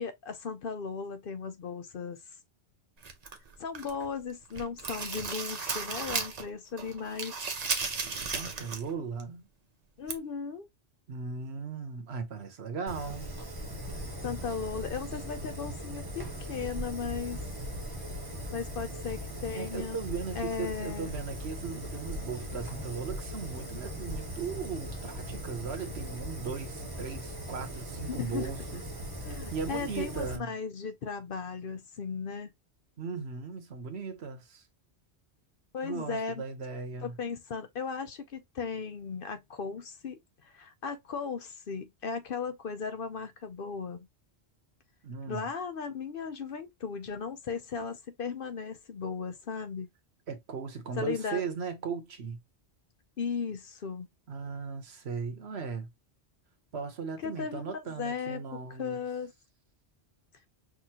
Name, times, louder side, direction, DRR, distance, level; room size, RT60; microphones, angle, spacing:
voice 1, 0.0-2.2 3.6-7.3 10.0-10.7 14.2-17.4 18.5-20.0 20.3-21.1 28.1-28.5 29.2-32.5 35.7-36.4 37.0-44.1 45.3-49.9 51.0-51.4 53.2-54.1 57.2-59.3, left 5 dB, 60° left, 0.8 m, -36 dB
sound 1, 3.0-4.1 4.4-6.5 6.8-8.9 9.2-9.3 10.1-10.2, right 4 dB, 40° right, 0.8 m, -35 dB
voice 2, 8.2-9.4 11.1-13.3 19.5-28.8 29.2-30.5 33.0-34.6 35.8-37.1 45.0-45.5 50.3-52.4 54.3-55.9 56.7-59.0, right 5 dB, 70° right, 1.2 m, -38 dB
Fire, 12.9-30.4, equal, 20° right, 1.2 m, -39 dB
sound 2, 16.3-24.5, left 2 dB, 20° left, 0.7 m, -47 dB
6.0 x 2.6 x 2.9 m
omnidirectional pair, 1.1 m